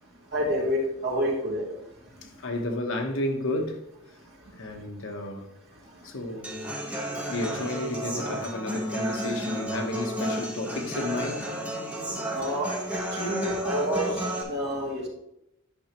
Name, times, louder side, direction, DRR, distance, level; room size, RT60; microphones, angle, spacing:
voice 1, 0.3-1.6 12.3-15.1, equal, 50° right, 2.4 m, -28 dB
voice 2, 2.2-3.9 4.6-5.5 6.0-6.7 7.3-11.5, left 1 dB, 65° left, 1.0 m, -32 dB
Human voice / Acoustic guitar, 6.4-14.4, equal, 5° right, 1.1 m, -32 dB
9.9 x 5.9 x 2.9 m
head